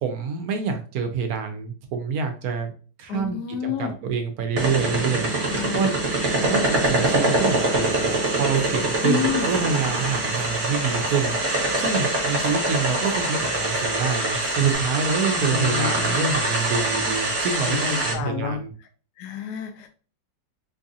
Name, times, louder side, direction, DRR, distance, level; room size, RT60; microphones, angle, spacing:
voice 1, 0.0-2.7 3.0-3.4 3.6-5.9 6.4-18.7, right 6 dB, 70° right, 6 dB, 0.9 m, -27 dB
voice 2, 3.1-4.0 5.4-5.9 9.0-9.6 15.3-16.3 17.7-18.6 19.2-19.9, left 8 dB, 70° left, 5 dB, 1.0 m, -29 dB
sound 1, 4.6-18.1, right 2 dB, 40° right, 1.1 m, -24 dB
sound 2, 7.4-14.7, right 2 dB, 20° right, 0.7 m, -36 dB
4.6 x 2.4 x 2.6 m, 0.39 s
omnidirectional pair, 2.0 m